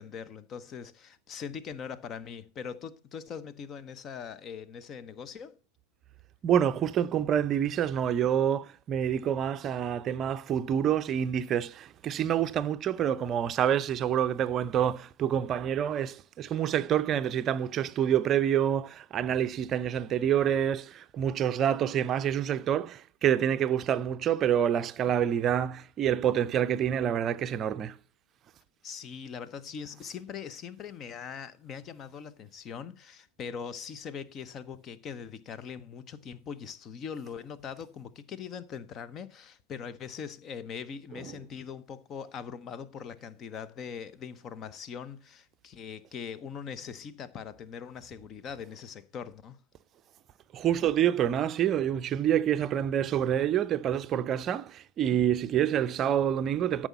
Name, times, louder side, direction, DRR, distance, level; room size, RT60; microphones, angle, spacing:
voice 1, 0.0-5.6 28.8-49.6, left 7 dB, 30° left, 0.9 m, -41 dB
voice 2, 6.4-28.0 41.2-41.3 50.5-56.9, right 9 dB, 30° right, 0.6 m, -27 dB
12.5 x 6.2 x 4.3 m
figure-of-eight pair, 90°, 0 cm